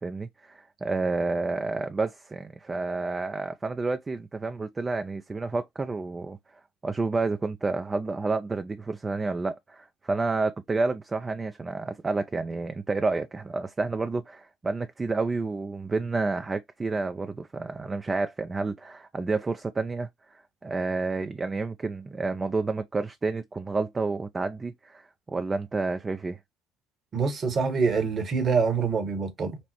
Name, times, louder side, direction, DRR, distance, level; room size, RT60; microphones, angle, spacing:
voice 1, 0.0-6.4 6.8-26.4, right 3 dB, 20° right, 0.4 m, -30 dB
voice 2, 27.1-29.6, right 5 dB, 40° right, 1.1 m, -25 dB
5.4 x 2.0 x 2.9 m
figure-of-eight pair, 60°, 0 cm